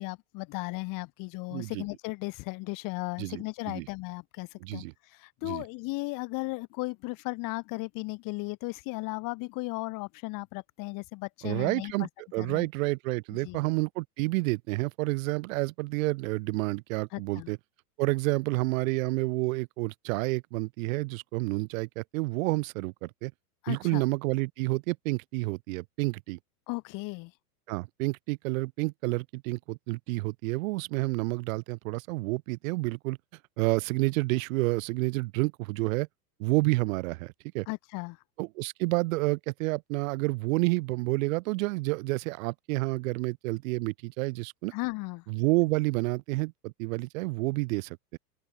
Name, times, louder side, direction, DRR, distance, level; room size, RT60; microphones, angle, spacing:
voice 1, 0.0-12.1 12.4-12.7 13.4-13.6 17.1-17.5 23.6-24.0 26.7-27.3 37.7-38.2 44.7-45.2, left 25 dB, 45° left, 1.7 m, -36 dB
voice 2, 1.5-1.8 3.2-3.9 4.6-4.9 5.4-5.6 11.4-17.6 18.0-23.3 23.7-26.4 27.7-33.2 33.6-36.1 36.4-37.7 38.4-44.7 45.3-48.2, right 23 dB, 55° right, 1.0 m, -29 dB
open air
hypercardioid pair, 115°, 48 cm